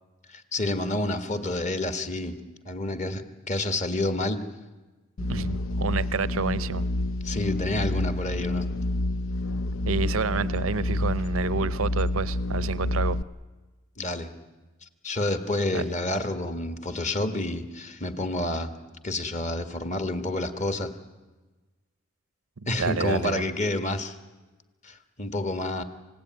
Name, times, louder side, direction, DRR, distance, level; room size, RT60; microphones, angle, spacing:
voice 1, 0.3-2.4 2.6-4.4 7.2-8.7 14.0-14.3 14.8-18.7 19.0-20.9 22.7-24.2 24.8-25.8, left 2 dB, 35° left, 9 dB, 1.7 m, -29 dB
sound 1, 5.2-13.2, left 2 dB, 75° left, 0.7 m, -28 dB
voice 2, 5.3-6.8 9.9-13.2 15.7-15.9 22.8-23.5, right 4 dB, 85° right, 16 dB, 0.7 m, -29 dB
27.5 x 17.0 x 9.4 m, 1.2 s
head